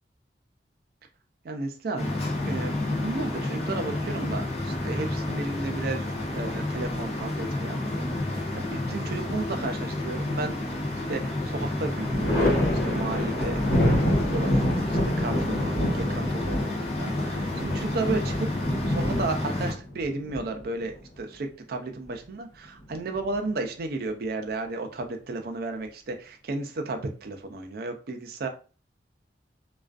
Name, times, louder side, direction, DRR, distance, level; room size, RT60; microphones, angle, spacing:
voice 1, 1.4-2.1 2.4-10.8 11.1-12.6 12.8-13.6 14.3-18.5 18.9-28.5, right 3 dB, 55° right, 4 dB, 0.4 m, -33 dB
sound 1, 2.0-19.7, left 2 dB, 35° left, 0.6 m, -30 dB
Thunder, 10.5-11.2 11.6-21.2 22.7-23.5, left 1 dB, 85° left, 1.0 m, -27 dB
2.4 x 2.3 x 2.3 m, 0.36 s
head